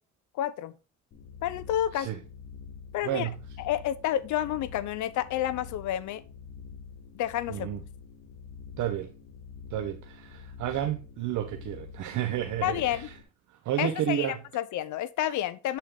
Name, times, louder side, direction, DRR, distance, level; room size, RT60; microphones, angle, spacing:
voice 1, 0.4-0.7 1.4-2.1 2.9-3.3 3.6-6.2 7.2-7.7 12.6-13.1 13.8-15.8, left 12 dB, 75° left, 0.6 m, -29 dB
sound 1, 1.1-13.2, left 6 dB, 55° left, 1.2 m, -46 dB
voice 2, 3.0-3.4 7.5-7.8 8.8-9.1 9.7-13.2 13.6-14.4, right 11 dB, 75° right, 0.7 m, -31 dB
8.0 x 4.1 x 3.6 m
cardioid pair, 90°, 30 cm